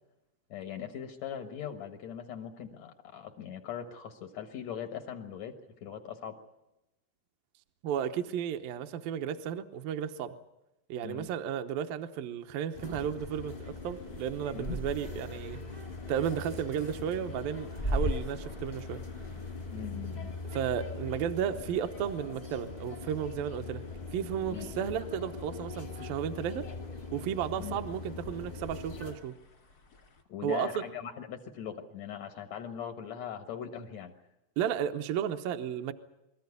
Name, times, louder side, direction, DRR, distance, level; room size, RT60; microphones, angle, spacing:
voice 1, 0.5-5.6 5.8-6.4 11.0-11.3 14.5-14.8 19.7-20.3 24.5-24.7 27.6-27.8 30.3-34.1, left 8 dB, 90° left, 5 dB, 1.5 m, -40 dB
voice 2, 7.8-10.3 10.9-15.6 16.1-19.0 20.5-23.8 24.1-26.7 27.1-29.3 30.4-30.7 34.6-35.9, right 9 dB, 80° right, 7 dB, 2.1 m, -33 dB
sound 1, 12.7-29.2, left 2 dB, 35° left, 0.6 m, -39 dB
sound 2, 13.3-30.2, left 5 dB, 60° left, 0.9 m, -54 dB
24.5 x 14.0 x 9.6 m, 0.96 s
omnidirectional pair, 5.4 m